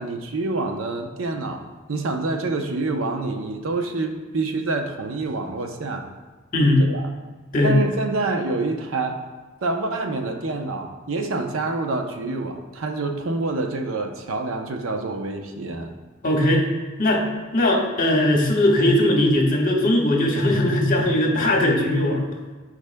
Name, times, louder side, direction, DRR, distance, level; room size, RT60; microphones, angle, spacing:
voice 1, 0.0-6.1 6.8-7.1 7.6-9.2 9.6-15.9, right 3 dB, 90° right, 5 dB, 0.7 m, -27 dB
voice 2, 16.2-16.6 17.0-17.2 17.5-22.2, left 1 dB, 45° left, -1 dB, 1.3 m, -19 dB
11.5 x 4.9 x 2.2 m, 1.3 s
head